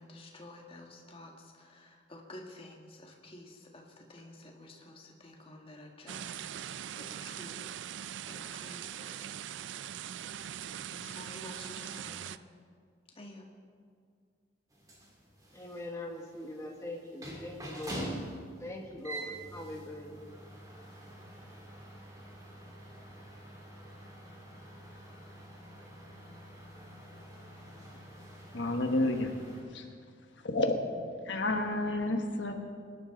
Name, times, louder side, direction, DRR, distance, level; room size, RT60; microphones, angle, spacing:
voice 1, 0.0-7.8 8.2-9.4 10.9-12.4 13.2-13.5, left 1 dB, 30° left, 0 dB, 1.8 m, -51 dB
sound 1, 6.1-12.4, right 10 dB, 85° right, 0.4 m, -41 dB
sound 2, 14.7-29.6, right 1 dB, 20° right, 2.6 m, -46 dB
voice 2, 15.5-18.1 18.6-20.3, left 1 dB, 15° left, -1 dB, 1.3 m, -42 dB
voice 3, 28.5-29.3 29.7-29.8 30.4-30.8 31.2-32.5, left 2 dB, 80° left, 4 dB, 1.3 m, -30 dB
23.0 x 11.0 x 3.9 m, 2.1 s
head